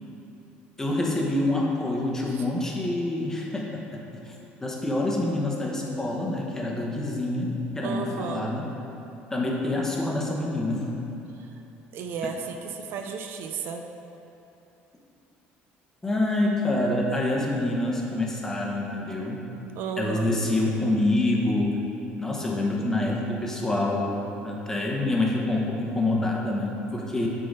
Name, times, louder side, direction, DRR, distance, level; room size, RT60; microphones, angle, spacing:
voice 1, 0.8-4.3 4.6-8.7 9.3-10.9 16.0-19.4 20.0-21.8 22.2-27.3, left 2 dB, 10° left, -2 dB, 1.0 m, -26 dB
voice 2, 7.8-8.5 11.4-11.5 11.9-13.9 19.8-20.3, right 5 dB, 60° right, 4 dB, 0.5 m, -33 dB
7.4 x 3.8 x 5.3 m, 2.9 s
cardioid pair, 125°, 4 cm